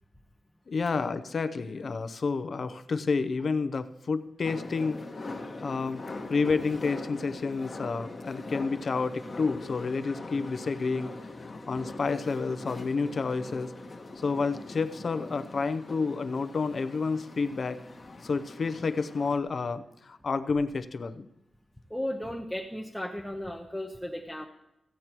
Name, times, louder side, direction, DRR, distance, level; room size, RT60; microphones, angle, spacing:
voice 1, 0.7-5.3 5.6-6.0 6.3-11.1 11.4-13.7 14.2-17.8 18.2-21.3, left 4 dB, 45° left, 12 dB, 0.7 m, -30 dB
sound 1, 4.4-19.4, left 2 dB, 30° left, 1.2 m, -42 dB
voice 2, 21.9-24.5, left 1 dB, 5° left, 1 dB, 0.8 m, -35 dB
15.0 x 8.3 x 4.5 m, 0.89 s
wide cardioid pair, 130°, 0 cm